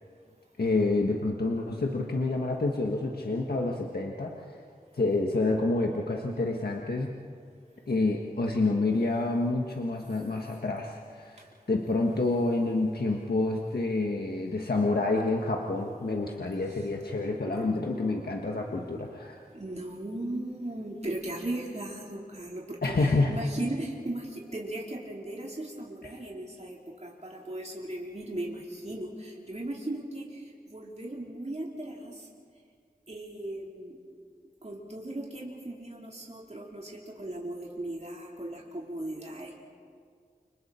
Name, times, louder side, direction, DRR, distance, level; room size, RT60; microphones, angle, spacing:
voice 1, 0.6-4.5 4.9-7.1 7.9-11.4 11.7-19.4 22.8-23.3, left 2 dB, 85° left, 0 dB, 1.5 m, -28 dB
voice 2, 19.5-32.3 33.1-34.0 34.6-39.5, right 1 dB, 45° right, -3 dB, 4.0 m, -37 dB
29.5 x 27.0 x 4.5 m, 2.1 s
wide cardioid pair, 45°, 16 cm